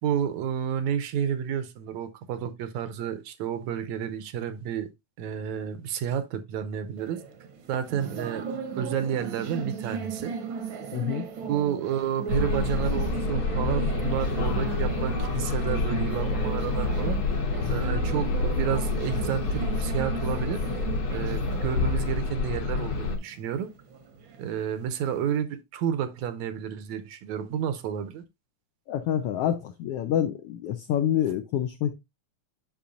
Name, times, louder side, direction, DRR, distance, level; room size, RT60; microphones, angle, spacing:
voice 1, 0.0-4.9 5.2-7.2 7.7-8.5 8.8-10.3 11.5-17.2 17.7-20.6 21.1-23.7 24.4-28.2, right 9 dB, 80° right, 2.0 m, -30 dB
sound 1, 7.0-25.4, right 6 dB, 60° right, 1.3 m, -37 dB
voice 2, 10.9-11.2 28.9-32.0, left 10 dB, 80° left, 1.3 m, -27 dB
sound 2, 12.3-23.2, left 3 dB, 60° left, 2.3 m, -28 dB
8.5 x 5.9 x 2.5 m
omnidirectional pair, 3.4 m